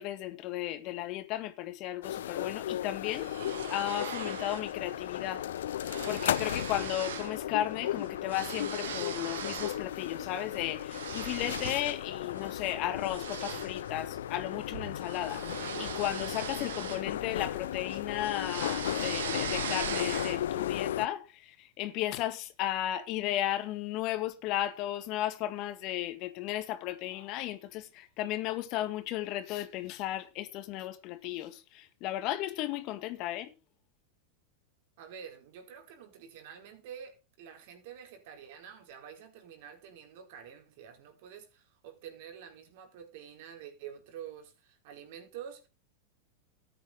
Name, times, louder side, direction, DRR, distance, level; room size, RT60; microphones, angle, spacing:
voice 1, 0.0-3.3 3.7-5.5 6.1-33.5, left 13 dB, 50° left, 2.1 m, -35 dB
sound 1, 2.0-21.1, left 11 dB, 80° left, 0.6 m, -35 dB
sound 2, 3.1-4.7 5.1-5.3 5.6-7.4 7.7-9.8 10.3-11.9 12.4-12.6 13.0-17.6 17.9-20.6, right 8 dB, 80° right, 2.2 m, -40 dB
voice 2, 35.0-45.7, right 8 dB, 60° right, 4.8 m, -48 dB
13.5 x 9.2 x 5.3 m
hypercardioid pair, 110°, 0 cm